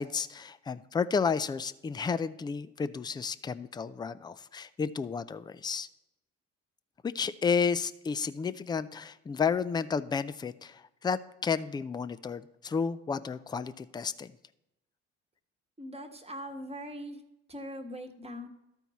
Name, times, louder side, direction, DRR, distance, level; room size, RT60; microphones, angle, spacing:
voice 1, 0.0-5.9 7.0-14.3, left 5 dB, 15° left, 14 dB, 0.4 m, -32 dB
voice 2, 15.8-17.2 17.5-18.5, equal, 15° right, 6 dB, 1.2 m, -41 dB
13.5 x 4.5 x 4.1 m, 0.91 s
hypercardioid pair, 50°, 35 cm